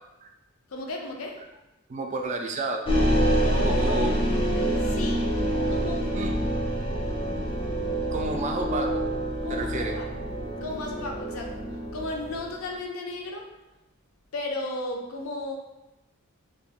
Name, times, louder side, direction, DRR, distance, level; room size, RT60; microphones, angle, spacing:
voice 1, 0.7-1.4 3.4-4.1 4.8-5.4 5.7-6.2 9.4-10.1 10.6-11.6 11.9-13.5 14.3-15.6, left 2 dB, 75° left, 1 dB, 0.5 m, -35 dB
voice 2, 1.9-2.9 3.6-4.1 6.1-6.4 8.1-9.0 9.5-10.0, right 2 dB, 35° right, 3 dB, 0.3 m, -30 dB
sound 1, 2.9-12.6, right 1 dB, 25° left, 0.5 m, -26 dB
2.4 x 2.2 x 3.4 m, 0.97 s
head